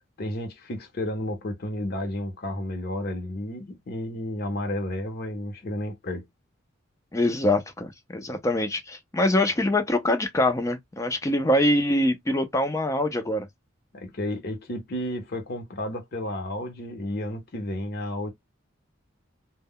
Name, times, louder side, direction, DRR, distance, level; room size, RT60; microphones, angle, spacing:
voice 1, 0.2-6.2 13.9-18.3, left 1 dB, 50° left, 0.7 m, -32 dB
voice 2, 7.1-13.5, left 1 dB, 15° left, 0.4 m, -24 dB
2.1 x 2.1 x 3.6 m
head